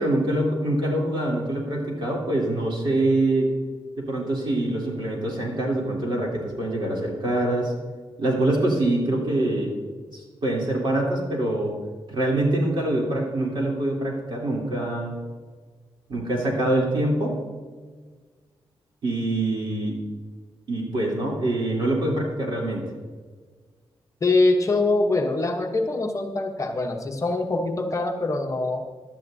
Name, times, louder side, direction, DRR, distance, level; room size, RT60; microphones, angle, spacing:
voice 1, 0.0-3.5 4.0-7.7 8.2-9.7 10.1-11.7 12.1-15.1 16.1-17.3 19.0-19.9 20.7-22.8, right 1 dB, 60° right, -2 dB, 3.2 m, -24 dB
voice 2, 24.2-28.8, left 2 dB, 35° left, 3 dB, 0.9 m, -23 dB
16.5 x 11.5 x 2.7 m, 1.5 s
wide cardioid pair, 175°, 10 cm